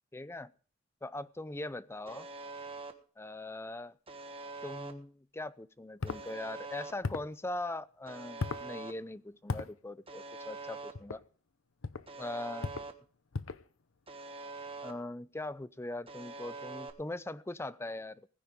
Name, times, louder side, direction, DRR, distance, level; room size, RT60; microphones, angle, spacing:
voice 1, 0.1-0.5 1.0-2.3 3.2-4.0 4.6-11.2 12.2-12.9 14.8-18.3, left 2 dB, 15° left, 0.5 m, -41 dB
Alarm, 2.1-2.9 4.1-4.9 6.1-6.9 8.1-8.9 10.1-10.9 12.1-12.9 14.1-14.9 16.1-16.9, right 3 dB, 30° right, 1.4 m, -44 dB
sound 1, 6.0-6.2 7.0-7.3 8.4-8.7 9.5-9.7 10.9-11.2 11.8-12.1 12.6-12.9 13.3-13.7, left 3 dB, 80° left, 0.8 m, -36 dB
19.5 x 10.0 x 3.7 m
head